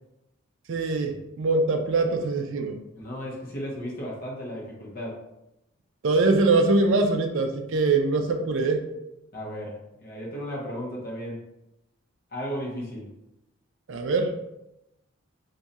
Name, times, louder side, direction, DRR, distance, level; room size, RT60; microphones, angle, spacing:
voice 1, 0.7-2.8 6.0-8.8 13.9-14.3, right 3 dB, 60° right, 5 dB, 0.4 m, -23 dB
voice 2, 2.9-5.2 9.3-9.8 10.0-11.4 12.3-13.1, equal, 45° left, -3 dB, 0.9 m, -34 dB
2.6 x 2.3 x 4.0 m, 0.87 s
head